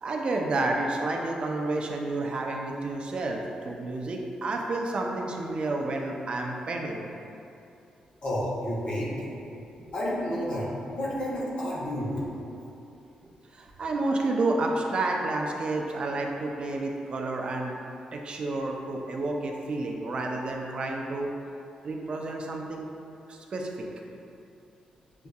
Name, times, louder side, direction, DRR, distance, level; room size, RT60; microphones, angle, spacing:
voice 1, 0.0-7.0 9.8-9.9 13.2-17.8 18.1-21.3 21.8-22.9 23.3-23.9, right 2 dB, 45° right, 1 dB, 0.5 m, -30 dB
voice 2, 8.2-9.1 9.9-12.3, equal, 55° left, -8 dB, 1.1 m, -30 dB
6.6 x 2.6 x 2.3 m, 2.7 s
cardioid pair, 100°, 2 cm